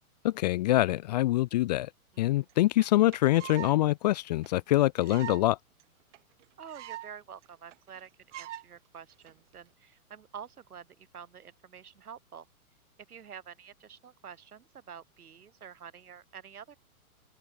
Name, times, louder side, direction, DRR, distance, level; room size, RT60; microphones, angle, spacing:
voice 1, 0.2-1.9 2.2-5.6, left 16 dB, 30° left, 0.5 m, -25 dB
sound 1, 2.5-2.6 2.8-2.9 3.1-3.8 4.1-4.2 4.4-4.5 5.0-5.5 5.8-5.9 6.1-6.2 6.4-7.1 7.4-7.5 7.7-8.0 8.3-8.6 9.3-9.5, right 14 dB, 55° right, 3.3 m, -42 dB
voice 2, 6.6-12.5 13.1-16.8, right 7 dB, 80° right, 6.8 m, -48 dB
open air
hypercardioid pair, 135°, 44 cm